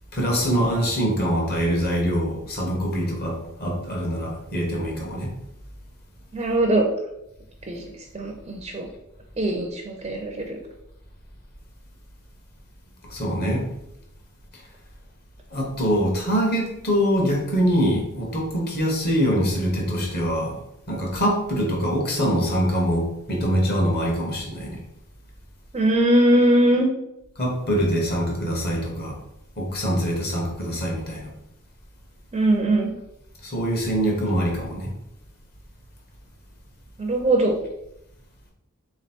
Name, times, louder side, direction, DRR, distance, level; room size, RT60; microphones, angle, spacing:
voice 1, 0.1-5.3 13.1-13.7 15.5-20.6 20.9-24.8 27.4-29.2 29.6-31.3 33.4-34.9, equal, 45° left, -1 dB, 1.2 m, -24 dB
voice 2, 6.3-6.9 7.7-8.9 9.4-10.6 25.7-26.9 32.3-32.9 37.0-37.6, right 1 dB, 25° right, 2 dB, 0.5 m, -21 dB
3.5 x 3.1 x 4.3 m, 0.83 s
head